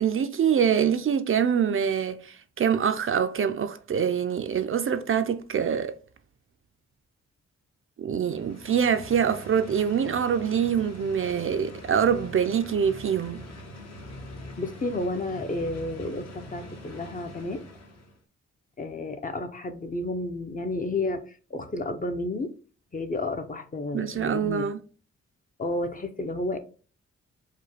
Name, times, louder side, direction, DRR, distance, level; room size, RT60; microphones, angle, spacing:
voice 1, 0.0-5.9 8.0-13.5 23.9-24.8, right 7 dB, 45° right, 0.4 m, -25 dB
sound 1, 8.2-18.2, left 1 dB, 60° left, 1.1 m, -43 dB
voice 2, 14.6-17.6 18.8-21.2 21.5-22.5 22.9-24.7 25.6-26.6, left 2 dB, 30° left, 0.6 m, -31 dB
4.9 x 2.2 x 4.2 m
wide cardioid pair, 110°, 29 cm